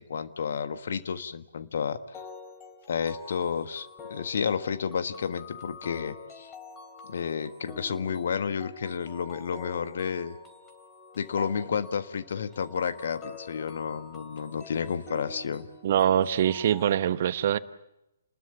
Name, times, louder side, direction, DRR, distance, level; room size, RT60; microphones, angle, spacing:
voice 1, 0.0-2.3 2.9-6.5 7.0-10.4 11.1-15.7, left 6 dB, 55° left, 1.5 m, -31 dB
sound 1, 2.1-16.9, left 4 dB, 15° left, 3.0 m, -47 dB
voice 2, 15.8-17.6, right 10 dB, 45° right, 1.0 m, -24 dB
29.5 x 20.5 x 7.3 m
figure-of-eight pair, 130°, 0 cm